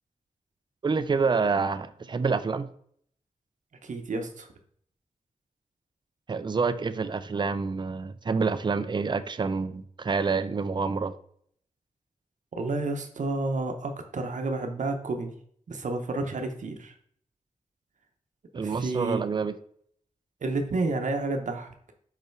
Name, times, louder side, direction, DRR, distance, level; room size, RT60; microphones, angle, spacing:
voice 1, 0.8-2.7 6.3-11.1 18.5-19.5, right 4 dB, 35° right, 12 dB, 0.4 m, -27 dB
voice 2, 3.8-4.5 12.5-15.3 15.7-16.9 18.6-19.2 20.4-21.7, right 3 dB, 70° right, 5 dB, 0.8 m, -30 dB
5.5 x 4.9 x 4.5 m, 0.63 s
wide cardioid pair, 120°, 13 cm